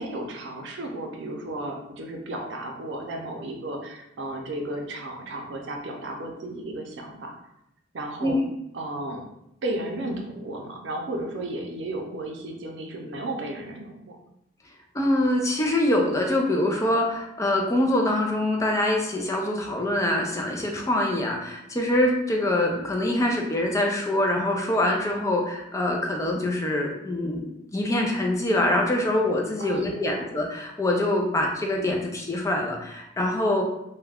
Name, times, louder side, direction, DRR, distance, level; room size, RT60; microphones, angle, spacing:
voice 1, 0.0-7.4 7.9-8.4 8.7-9.3 9.6-14.2 29.6-30.3, right 1 dB, 75° right, 2 dB, 0.5 m, -34 dB
voice 2, 14.9-33.6, left 1 dB, 15° left, 1 dB, 0.4 m, -24 dB
2.3 x 2.1 x 3.3 m, 0.84 s
head